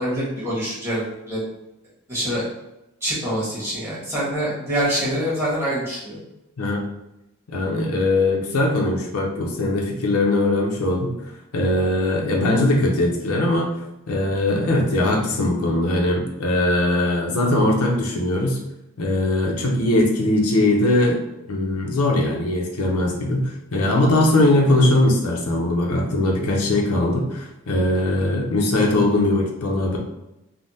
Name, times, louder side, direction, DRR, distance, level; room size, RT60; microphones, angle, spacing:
voice 1, 0.0-1.5 2.1-2.4 3.0-6.2, equal, 10° right, -8 dB, 1.2 m, -25 dB
voice 2, 7.5-11.2 11.5-13.7 14.1-18.6 19.0-21.2 21.5-30.0, left 1 dB, 85° left, 0 dB, 0.6 m, -20 dB
3.4 x 2.1 x 2.6 m, 0.89 s
head